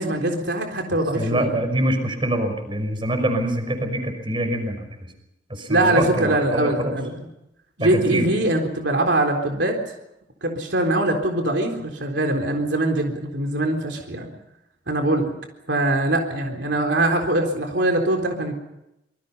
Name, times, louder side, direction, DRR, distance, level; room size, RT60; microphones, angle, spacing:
voice 1, 0.0-1.6 5.7-7.3 7.8-9.8 10.4-14.3 14.9-15.3 15.7-18.5, right 1 dB, 65° right, 3 dB, 3.8 m, -22 dB
voice 2, 1.1-4.8 5.5-7.0 7.8-8.3, right 1 dB, 30° right, 7 dB, 5.5 m, -24 dB
26.5 x 24.0 x 5.6 m, 0.87 s
head